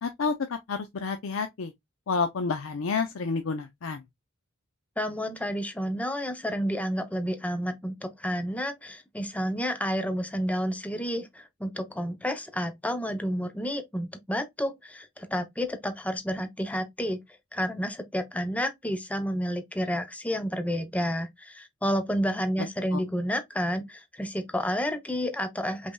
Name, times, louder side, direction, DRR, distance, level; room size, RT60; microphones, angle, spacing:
voice 1, 0.0-1.7 2.1-4.1 22.9-23.0, left 4 dB, 70° left, 0.5 m, -29 dB
voice 2, 5.0-17.2 17.5-25.9, equal, 5° left, 0.6 m, -30 dB
5.2 x 3.4 x 2.2 m
head